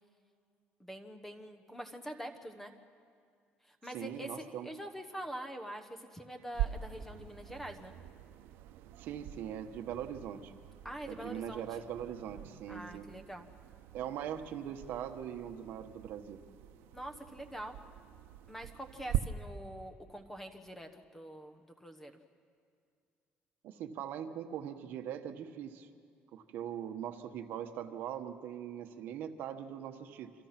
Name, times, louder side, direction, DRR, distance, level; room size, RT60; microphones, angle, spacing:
voice 1, 0.8-2.7 3.6-7.9 10.8-11.8 12.7-13.5 16.9-17.8 18.5-22.2, equal, 5° left, 7 dB, 1.1 m, -45 dB
voice 2, 3.9-4.7 9.0-10.5 11.1-13.1 13.9-16.4 23.6-25.9 26.3-30.3, right 9 dB, 60° right, 7 dB, 1.3 m, -41 dB
sound 1, 6.5-19.2, right 12 dB, 85° right, 0.8 m, -43 dB
28.5 x 25.5 x 6.0 m, 2.3 s
cardioid pair, 180°, 4 cm